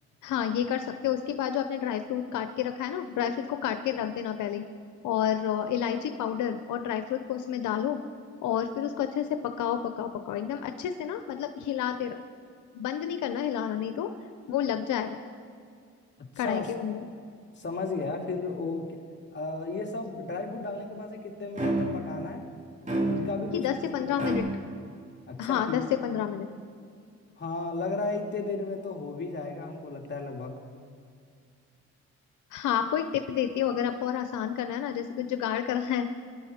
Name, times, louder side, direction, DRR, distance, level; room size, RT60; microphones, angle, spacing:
voice 1, 0.2-4.6 5.0-8.0 8.4-12.2 12.7-14.1 14.5-15.2 16.4-17.1 23.5-24.4 25.4-26.5 32.5-36.1, left 9 dB, 80° left, 8 dB, 0.8 m, -30 dB
voice 2, 16.4-16.7 17.6-19.0 19.3-22.4 23.1-23.8 24.2-24.3 25.3-25.9 27.4-30.5, left 3 dB, 35° left, 1 dB, 2.4 m, -34 dB
sound 1, 21.6-22.1 22.9-23.5 24.2-24.4, right 1 dB, 25° right, 3.3 m, -28 dB
23.5 x 11.5 x 4.3 m, 2.2 s
cardioid pair, 90°, 30 cm